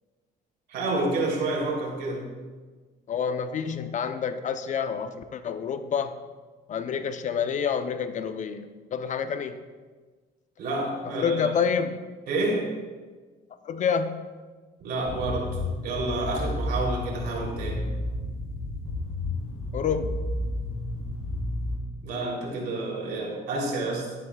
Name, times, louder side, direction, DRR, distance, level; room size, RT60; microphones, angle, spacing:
voice 1, 0.7-2.3 10.6-11.5 12.3-12.7 14.8-15.6 15.8-17.9 22.0-24.1, right 2 dB, 70° right, -2 dB, 3.1 m, -29 dB
voice 2, 3.1-6.1 6.7-9.6 11.2-12.0 13.6-14.2 19.7-20.2, left 6 dB, 45° left, 10 dB, 0.6 m, -28 dB
sound 1, 15.1-21.8, left 1 dB, 70° left, 3.1 m, -31 dB
12.0 x 11.0 x 2.3 m, 1.4 s
cardioid pair, 110°, 17 cm